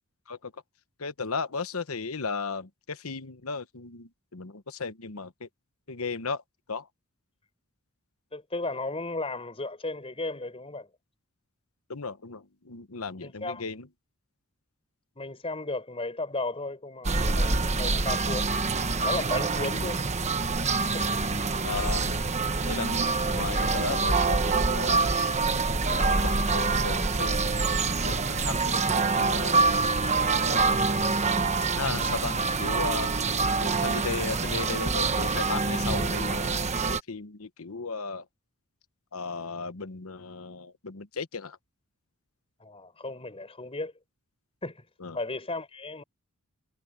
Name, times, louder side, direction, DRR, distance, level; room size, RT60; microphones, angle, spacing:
voice 1, 1.0-5.5 5.9-6.4 6.7-6.9 11.9-13.9 19.6-19.8 21.6-22.2 22.7-25.0 25.8-27.5 28.0-29.7 30.4-30.8 31.8-33.1 33.6-38.2 39.1-41.6 45.0-45.2, left 4 dB, 70° left, 1.1 m, -36 dB
voice 2, 8.3-10.9 13.2-13.6 15.2-18.6 19.0-20.1 20.9-21.2 42.6-43.9 44.6-44.8 45.1-46.0, left 2 dB, 25° left, 4.2 m, -34 dB
sound 1, 17.0-37.0, right 3 dB, 30° right, 1.2 m, -26 dB
head